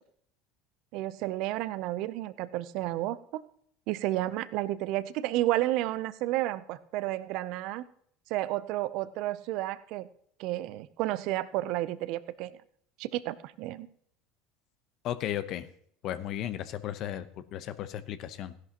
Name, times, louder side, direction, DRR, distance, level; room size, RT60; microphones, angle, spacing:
voice 1, 0.9-3.4 3.9-7.8 8.3-10.1 10.4-12.5 13.0-13.9, right 15 dB, 65° right, 15 dB, 0.6 m, -31 dB
voice 2, 15.0-15.7 16.0-17.3 17.5-18.5, left 11 dB, 55° left, 13 dB, 0.9 m, -34 dB
16.0 x 11.5 x 3.0 m, 0.63 s
hypercardioid pair, 85°, 0 cm